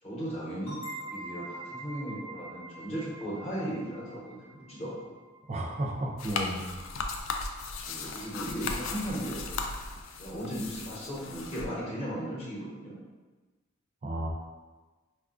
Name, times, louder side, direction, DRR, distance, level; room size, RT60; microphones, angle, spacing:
voice 1, 0.0-5.1 7.9-9.6 10.2-13.0, right 1 dB, 30° left, -6 dB, 0.8 m, -36 dB
sound 1, 0.7-6.1, right 2 dB, 90° left, 1.2 m, -45 dB
voice 2, 5.5-6.8 14.0-14.3, right 1 dB, 35° right, 0 dB, 0.4 m, -33 dB
sound 2, 6.2-11.7, left 4 dB, 70° left, 0.3 m, -36 dB
4.4 x 2.3 x 2.4 m, 1.3 s
head